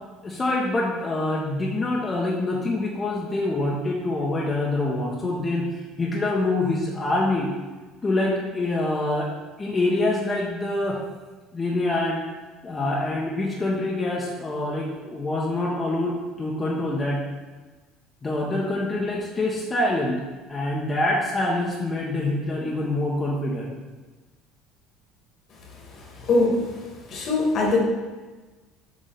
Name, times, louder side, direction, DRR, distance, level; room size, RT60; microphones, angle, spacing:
voice 1, 0.2-5.7 6.0-7.5 8.0-9.3 9.6-11.0 11.5-12.2 12.6-17.2 18.2-20.2 20.5-23.7, left 2 dB, 25° left, -4 dB, 1.4 m, -25 dB
voice 2, 26.3-26.6 27.1-27.8, left 3 dB, 50° left, -1 dB, 2.1 m, -21 dB
7.7 x 3.9 x 4.1 m, 1.3 s
hypercardioid pair, 70°, 0 cm